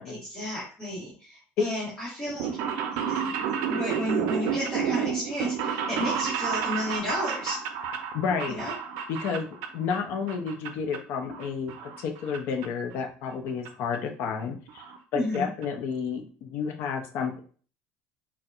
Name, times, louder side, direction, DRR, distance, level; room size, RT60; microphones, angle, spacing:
voice 1, 0.0-2.5 3.2-3.3 3.7-7.6 8.5-8.7 15.1-15.5, left 1 dB, 10° left, -8 dB, 1.1 m, -32 dB
sound 1, 2.3-10.0 10.3-11.0 11.3-12.4 12.6-12.7 13.7-13.8 13.9-14.0 14.3-14.4 14.7-15.0 15.3-15.4 15.6-15.7, right 7 dB, 75° right, 0.4 m, -30 dB
voice 2, 8.1-8.6 9.1-14.8 15.1-17.4, left 6 dB, 60° left, 4 dB, 0.6 m, -31 dB
4.3 x 2.1 x 2.5 m, 0.42 s
cardioid pair, 155°, 4 cm